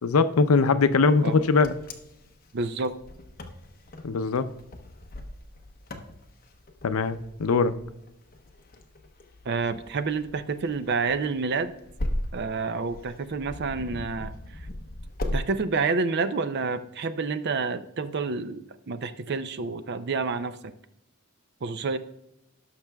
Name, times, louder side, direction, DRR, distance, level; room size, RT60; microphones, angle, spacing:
voice 1, 0.0-1.7 4.0-4.5 6.8-7.8, left 4 dB, 90° left, 12 dB, 0.5 m, -21 dB
Wind, 1.2-15.4, left 1 dB, 45° left, 0.8 m, -38 dB
voice 2, 2.5-2.9 9.5-11.7 12.3-14.4 15.3-20.7 21.6-22.0, right 4 dB, 55° right, 12 dB, 0.5 m, -29 dB
17.5 x 5.9 x 2.3 m, 0.83 s
head